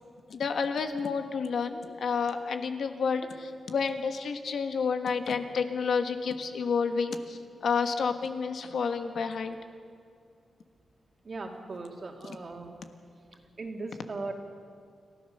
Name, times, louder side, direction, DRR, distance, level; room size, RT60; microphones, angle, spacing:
voice 1, 0.3-9.6 12.2-12.4, left 5 dB, 70° left, 7 dB, 1.4 m, -30 dB
voice 2, 11.3-12.8 13.6-14.3, right 3 dB, 40° right, 2 dB, 2.4 m, -38 dB
29.5 x 13.5 x 6.7 m, 2.3 s
wide cardioid pair, 135°, 0 cm